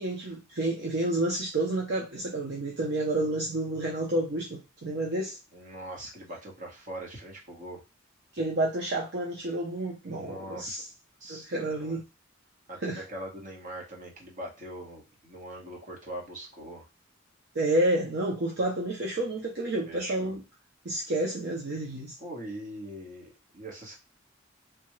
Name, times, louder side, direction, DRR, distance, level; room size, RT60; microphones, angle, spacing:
voice 1, 0.0-5.4 8.3-10.9 11.3-12.0 12.8-13.0 17.5-20.4 20.8-22.2, right 1 dB, 60° right, 0.7 m, -30 dB
voice 2, 5.5-7.8 10.1-10.8 11.2-12.0 12.7-16.9 19.9-20.4 22.2-24.0, right 1 dB, 40° right, 1.2 m, -42 dB
3.4 x 2.3 x 3.1 m
head